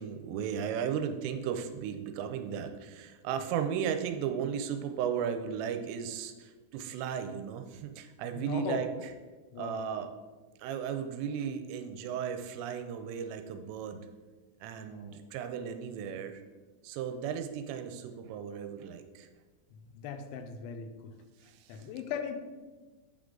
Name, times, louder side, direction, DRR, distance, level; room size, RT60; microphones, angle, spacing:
voice 1, 0.0-9.1 9.6-10.1 10.6-14.0 14.6-16.4 16.8-19.3 21.4-21.8, right 8 dB, 85° right, 7 dB, 2.7 m, -35 dB
voice 2, 8.3-8.8 9.5-9.9 14.9-15.2 19.9-21.1 21.7-22.4, left 6 dB, 90° left, 7 dB, 2.9 m, -39 dB
8.9 x 3.6 x 3.7 m, 1.3 s
omnidirectional pair, 5.2 m